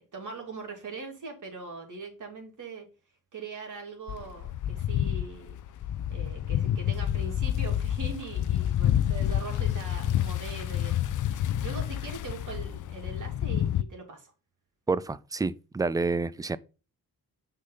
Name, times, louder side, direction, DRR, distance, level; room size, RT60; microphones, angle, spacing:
voice 1, 0.0-2.9 3.3-5.6 6.1-11.0 11.2-14.3, right 3 dB, 55° right, 2.7 m, -41 dB
sound 1, 4.1-13.8, left 11 dB, 55° left, 0.6 m, -28 dB
voice 2, 14.9-16.6, right 3 dB, 10° right, 0.4 m, -28 dB
6.4 x 4.0 x 5.4 m
cardioid pair, 75°, 37 cm